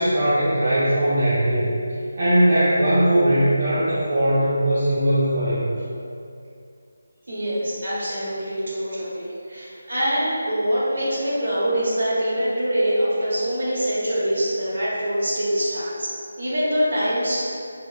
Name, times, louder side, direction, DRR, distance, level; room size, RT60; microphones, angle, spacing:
voice 1, 0.0-1.8 2.2-5.7, right 1 dB, 35° right, -11 dB, 0.3 m, -19 dB
voice 2, 7.3-16.1 16.4-17.5, equal, 55° right, -8 dB, 0.8 m, -24 dB
2.9 x 2.0 x 2.2 m, 2.4 s
figure-of-eight pair, 180°, 0 cm